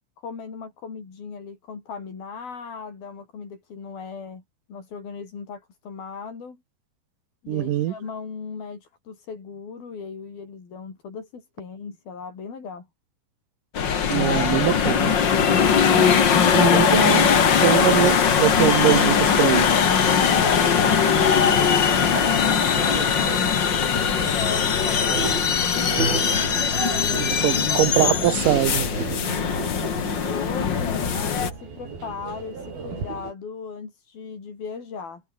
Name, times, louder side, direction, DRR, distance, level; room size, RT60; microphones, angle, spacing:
voice 1, 0.2-4.4 4.7-6.6 7.4-12.9 20.2-26.0 27.3-28.3 29.1-35.2, left 5 dB, 85° left, 7.3 m, -37 dB
voice 2, 7.5-7.9 14.1-15.1 16.5-17.3 17.6-19.7 27.2-28.9, right 13 dB, 70° right, 2.6 m, -22 dB
sound 1, 13.7-31.5, left 7 dB, 40° left, 1.8 m, -20 dB
sound 2, 16.9-33.3, right 5 dB, 85° right, 8.1 m, -34 dB
omnidirectional pair, 4.1 m